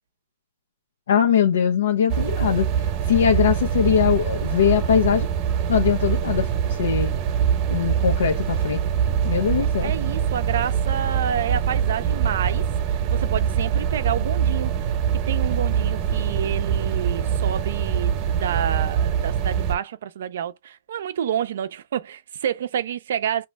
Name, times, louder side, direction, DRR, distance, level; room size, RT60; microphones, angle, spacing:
voice 1, 1.1-5.3 5.7-7.1 7.7-8.8 9.2-9.9, left 8 dB, 80° left, 0.8 m, -21 dB
sound 1, 2.1-19.8, right 8 dB, 35° right, 0.9 m, -23 dB
voice 2, 9.8-14.7 15.1-23.5, right 9 dB, 70° right, 0.5 m, -29 dB
5.2 x 3.0 x 3.4 m
hypercardioid pair, 150°, 0 cm